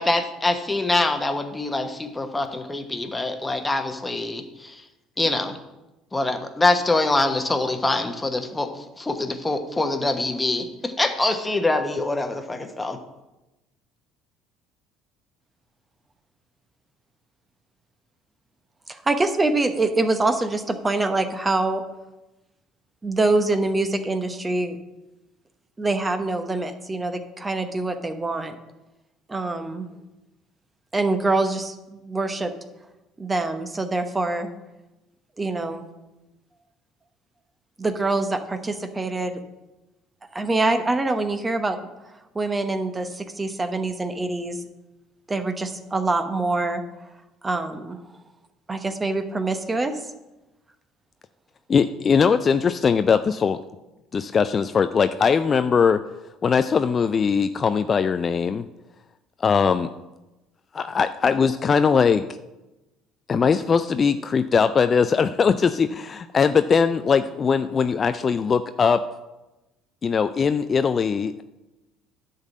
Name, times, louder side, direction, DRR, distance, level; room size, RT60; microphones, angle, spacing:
voice 1, 0.0-4.8 5.2-5.6 6.1-13.0, left 2 dB, 15° left, 6 dB, 1.1 m, -24 dB
voice 2, 18.9-21.8 23.0-24.8 25.8-28.5 29.3-29.9 30.9-32.5 33.2-34.5 35.4-35.8 37.8-39.4 40.3-41.8 42.3-44.6 45.3-46.8 47.4-48.0 48.7-49.9, right 2 dB, 20° right, 9 dB, 1.0 m, -25 dB
voice 3, 51.7-53.6 54.1-56.0 56.4-58.6 59.4-59.9 60.7-62.2 63.3-69.0 70.0-71.4, left 6 dB, 35° left, 11 dB, 0.4 m, -20 dB
10.5 x 4.0 x 7.4 m, 1.0 s
hypercardioid pair, 60°, 0 cm